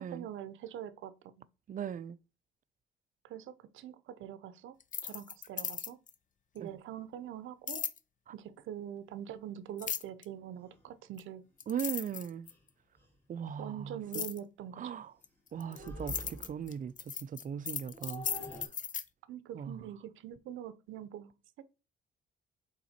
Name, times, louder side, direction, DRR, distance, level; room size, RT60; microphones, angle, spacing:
voice 1, 0.0-1.5 3.2-4.8 5.0-6.0 6.5-7.9 8.3-11.4 13.6-15.0 19.3-21.6, right 10 dB, 80° right, 0.7 m, -44 dB
voice 2, 1.7-2.2 6.6-6.8 8.3-8.4 11.7-12.5 13.3-14.2 14.8-15.1 15.5-18.3 18.6-18.7 19.5-19.8, right 8 dB, 40° right, 0.5 m, -39 dB
sound 1, 4.8-6.1 7.7-8.0 9.8-10.2 11.2-11.3 11.6-12.7 14.1-14.4 15.2-19.0, left 7 dB, 40° left, 0.6 m, -37 dB
sound 2, 10.6-10.8 12.0-12.1 12.5-12.6 13.0-13.2 15.5-16.8 17.7-18.7, right 1 dB, 10° left, 2.2 m, -46 dB
5.7 x 4.1 x 4.2 m
cardioid pair, 90°, 20 cm